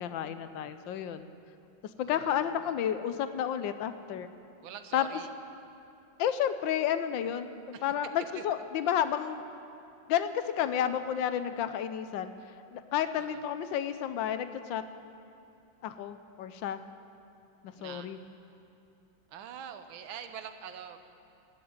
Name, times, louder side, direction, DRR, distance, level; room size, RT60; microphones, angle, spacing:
voice 1, 0.0-1.3 2.0-4.3 4.9-5.1 6.2-7.5 7.8-9.4 10.1-12.3 12.7-14.8 15.8-16.8 17.6-18.2, left 9 dB, 75° left, 11 dB, 1.3 m, -31 dB
voice 2, 2.0-3.0 4.6-5.3 7.7-7.8 8.3-8.4 13.1-13.4 17.7-18.1 19.3-21.0, right 8 dB, 85° right, 8 dB, 1.7 m, -45 dB
20.0 x 6.9 x 8.6 m, 2.6 s
omnidirectional pair, 2.2 m